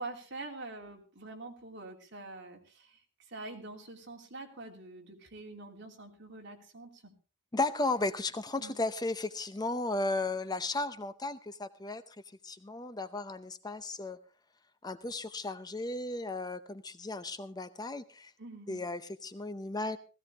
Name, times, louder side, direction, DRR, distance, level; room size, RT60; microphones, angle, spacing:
voice 1, 0.0-3.0 3.3-7.1 8.6-8.8 18.4-18.8, right 2 dB, 60° right, 1 dB, 3.0 m, -45 dB
voice 2, 7.5-12.0 12.4-14.2 14.8-18.3 18.7-20.0, left 2 dB, 20° left, 11 dB, 0.7 m, -35 dB
16.5 x 16.0 x 3.4 m, 0.34 s
head